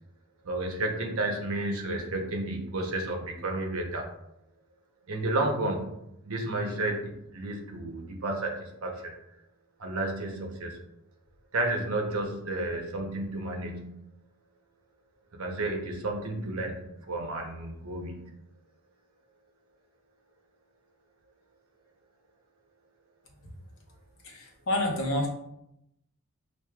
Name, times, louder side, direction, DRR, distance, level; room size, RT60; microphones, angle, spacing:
voice 1, 0.4-4.1 5.1-6.0 6.3-9.1 9.8-10.8 11.5-14.0 15.3-18.4, right 2 dB, 80° right, 2 dB, 0.8 m, -32 dB
voice 2, 24.2-25.3, left 1 dB, 65° left, 0 dB, 0.9 m, -28 dB
6.3 x 2.6 x 2.3 m, 0.81 s
head